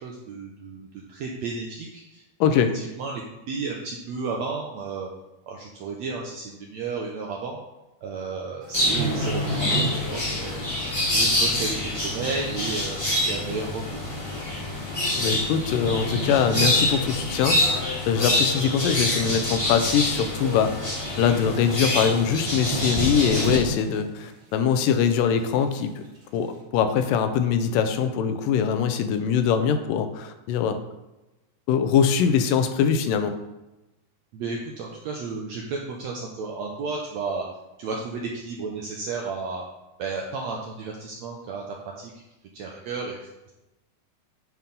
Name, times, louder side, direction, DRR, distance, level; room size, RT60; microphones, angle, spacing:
voice 1, 0.0-2.2 2.7-3.2 3.5-5.1 5.5-7.6 8.0-10.7 11.1-13.0 13.2-14.0 34.3-37.4 37.8-39.6 40.0-42.1 42.5-43.5, right 4 dB, 70° right, -1 dB, 1.8 m, -33 dB
voice 2, 2.4-2.7 15.2-25.9 26.3-30.8 31.7-33.4, left 7 dB, 90° left, 8 dB, 2.3 m, -23 dB
sound 1, 8.6-10.4 10.6-10.9 11.5-11.6 12.5-12.6 12.8-12.9 13.7-13.9 15.0-15.4 15.7-17.3 17.6-17.8 18.3-18.9 19.2-19.3 19.5-19.6 20.0-20.1 21.1-21.2 21.5-21.8 22.0-22.2 22.6-24.2 24.6-24.7, right 1 dB, 40° right, 2.5 m, -31 dB
sound 2, 8.7-23.6, left 1 dB, 15° left, 1.5 m, -26 dB
9.6 x 4.5 x 5.4 m, 0.99 s
omnidirectional pair, 3.9 m